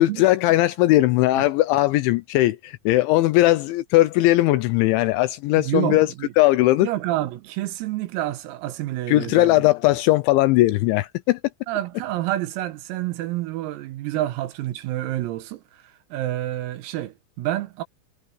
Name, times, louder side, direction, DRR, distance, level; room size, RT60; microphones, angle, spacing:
voice 1, 0.0-6.1 6.4-6.9 9.1-11.4, left 17 dB, 85° left, 2.8 m, -19 dB
voice 2, 5.6-6.3 6.8-9.7 11.7-15.8 16.1-17.8, right 15 dB, 90° right, 4.3 m, -28 dB
omnidirectional pair, 5.9 m